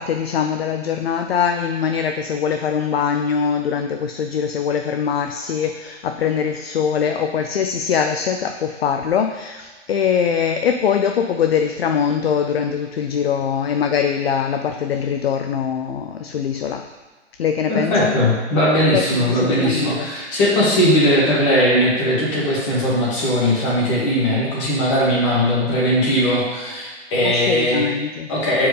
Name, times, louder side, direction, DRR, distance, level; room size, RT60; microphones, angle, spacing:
voice 1, 0.0-16.9 17.4-18.1 18.9-20.1 27.2-28.3, left 7 dB, 55° left, 5 dB, 0.4 m, -22 dB
voice 2, 17.7-27.8 28.3-28.7, equal, 25° left, -7 dB, 1.8 m, -19 dB
7.5 x 4.7 x 3.3 m, 1.3 s
hypercardioid pair, 165°, 37 cm